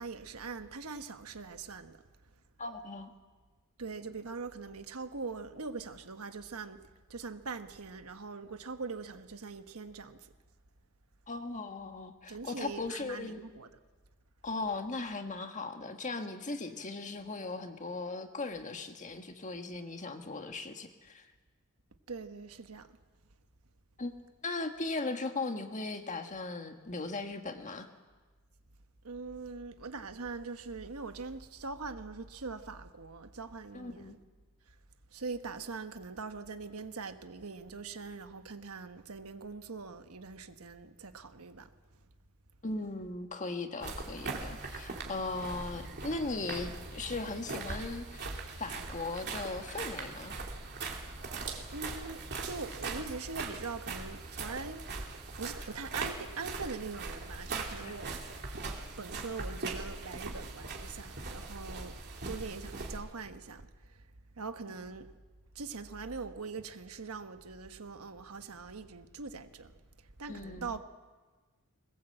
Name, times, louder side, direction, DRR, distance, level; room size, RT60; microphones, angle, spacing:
voice 1, 0.0-2.0 3.8-6.8 7.1-10.3 12.3-13.7 22.1-22.9 29.0-34.2 35.1-41.7 51.7-54.8 55.4-58.2 59.0-62.0 62.2-64.0 64.4-65.1 65.5-69.7 70.0-70.8, right 4 dB, 75° right, 1.2 m, -42 dB
voice 2, 2.6-3.1 11.3-13.4 14.4-21.3 24.0-27.9 33.7-34.2 42.6-48.3 48.6-50.3 57.8-58.0 64.7-64.8 70.3-70.7, left 3 dB, 35° left, 1.5 m, -38 dB
sound 1, 43.8-63.0, right 3 dB, 50° right, 2.9 m, -40 dB
21.5 x 20.5 x 7.9 m
head